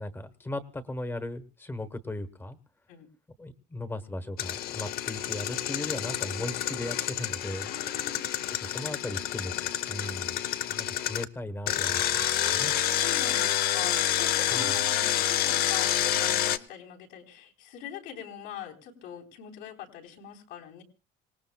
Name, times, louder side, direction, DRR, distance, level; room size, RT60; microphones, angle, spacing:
voice 1, 0.0-2.6 3.4-7.7 8.6-10.4 10.7-12.2 12.5-12.7 14.5-14.7, left 1 dB, 10° left, 11 dB, 1.1 m, -37 dB
Engine, 4.4-11.2 11.7-16.6, left 11 dB, 50° left, 0.8 m, -28 dB
voice 2, 7.7-8.3 12.6-12.7 13.0-20.8, left 9 dB, 75° left, 0 dB, 3.8 m, -43 dB
26.5 x 18.5 x 2.3 m, 0.35 s
cardioid pair, 160°, 19 cm